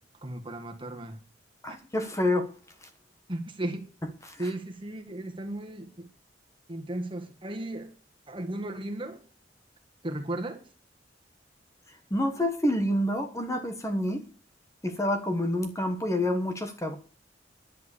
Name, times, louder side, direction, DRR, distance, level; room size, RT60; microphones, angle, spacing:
voice 1, 0.2-1.2 1.7-1.8 3.3-3.8 4.4-6.1 6.7-7.9 8.3-9.2 10.0-10.6, right 1 dB, 30° right, 1.8 m, -35 dB
voice 2, 1.6-2.5 4.3-4.4 12.1-14.2 14.8-16.9, left 1 dB, 15° left, 1.3 m, -28 dB
11.0 x 7.7 x 8.4 m
head